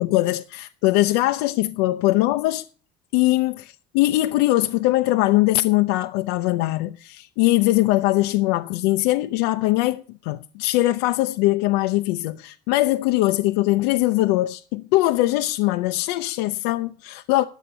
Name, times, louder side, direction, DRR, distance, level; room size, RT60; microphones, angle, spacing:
voice 1, 0.0-2.6 3.1-17.4, left 17 dB, 90° left, 0.6 m, -21 dB
11.5 x 7.3 x 6.6 m
cardioid pair, 130°, 17 cm